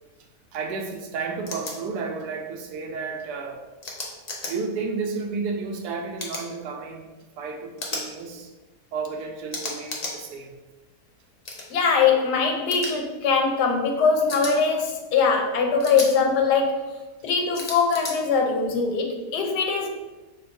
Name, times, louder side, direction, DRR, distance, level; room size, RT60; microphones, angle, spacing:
voice 1, 0.5-3.7 4.4-7.1 7.4-8.5 8.9-10.6, right 4 dB, 90° right, 4 dB, 1.2 m, -32 dB
sound 1, 1.5-1.7 3.8-4.5 6.2-6.5 7.8-8.1 9.5-10.1 11.4-11.7 12.7-12.9 14.3-14.5 15.8-16.1 17.5-18.1, left 2 dB, 40° left, 0.5 m, -33 dB
voice 2, 11.7-16.9 17.2-19.9, left 5 dB, 90° left, 2 dB, 1.3 m, -22 dB
5.7 x 3.6 x 2.6 m, 1.2 s
omnidirectional pair, 1.7 m